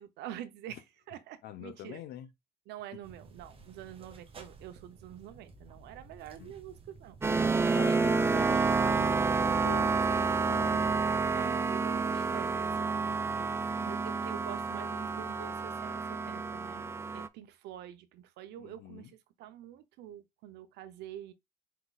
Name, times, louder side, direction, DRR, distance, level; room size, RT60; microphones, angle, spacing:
voice 1, 0.0-2.0 2.7-7.2 7.6-8.5 11.3-21.3, right 11 dB, 80° right, 0.8 m, -47 dB
voice 2, 1.4-2.3 6.4-6.5 7.7-10.9 18.6-19.1, left 12 dB, 70° left, 0.9 m, -45 dB
sound 1, 3.0-8.1, right 4 dB, 35° right, 1.0 m, -53 dB
sound 2, 7.2-17.3, right 4 dB, 15° right, 0.4 m, -29 dB
4.6 x 3.9 x 2.4 m
cardioid pair, 110°, 17 cm